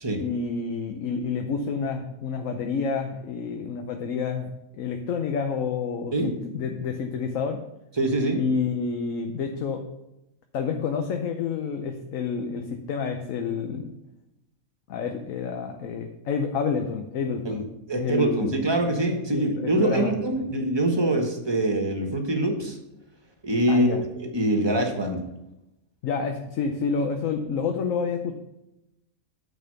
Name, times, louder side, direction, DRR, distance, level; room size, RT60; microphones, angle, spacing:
voice 1, 0.2-7.6 8.4-9.8 10.5-13.9 14.9-17.6 18.0-18.6 19.3-20.1 23.7-24.0 26.0-28.4, left 5 dB, 70° left, 5 dB, 1.1 m, -29 dB
voice 2, 8.0-8.4 17.4-22.8 23.4-23.9 24.3-25.2, right 1 dB, 20° right, 3 dB, 1.2 m, -24 dB
9.3 x 4.2 x 6.6 m, 0.90 s
omnidirectional pair, 1.4 m